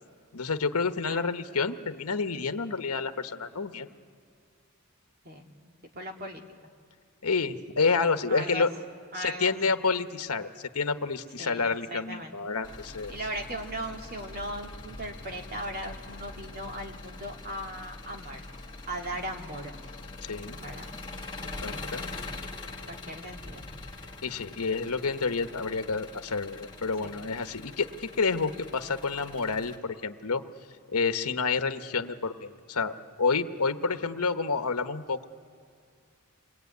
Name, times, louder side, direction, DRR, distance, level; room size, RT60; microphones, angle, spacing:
voice 1, 0.3-3.9 7.2-8.7 9.1-13.1 20.2-20.6 21.6-22.0 24.2-30.4 30.9-32.9 33.2-35.3, left 4 dB, 80° left, 9 dB, 1.1 m, -29 dB
voice 2, 5.2-6.4 8.3-8.7 9.1-9.5 11.4-12.3 13.1-18.4 18.9-19.7 20.6-20.9 21.4-22.2 22.9-23.7 27.0-27.2, right 1 dB, 45° right, 2 dB, 2.3 m, -38 dB
Engine, 12.6-29.8, left 3 dB, 20° left, 2.1 m, -43 dB
28.5 x 22.5 x 9.4 m, 2.1 s
head